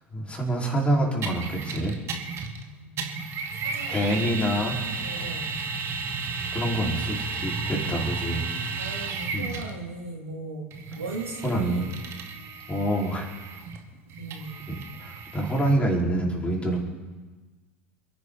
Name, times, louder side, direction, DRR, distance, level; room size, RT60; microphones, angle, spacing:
voice 1, 0.1-2.0 3.9-4.8 6.5-8.4 8.7-8.9 9.3-9.5 11.4-11.9 12.7-13.3 14.7-16.8, right 1 dB, 15° left, -2 dB, 4.9 m, -26 dB
sound 1, 1.2-2.7 3.0-9.8 10.7-15.7, right 4 dB, 40° right, 2.2 m, -33 dB
voice 2, 2.7-3.0 3.6-4.0 5.0-5.6 7.7-8.1 8.7-10.7 11.0-12.0 14.2-14.7, right 3 dB, 85° right, 0 dB, 2.8 m, -38 dB
28.5 x 10.5 x 4.2 m, 1.3 s
figure-of-eight pair, 75°, 7 cm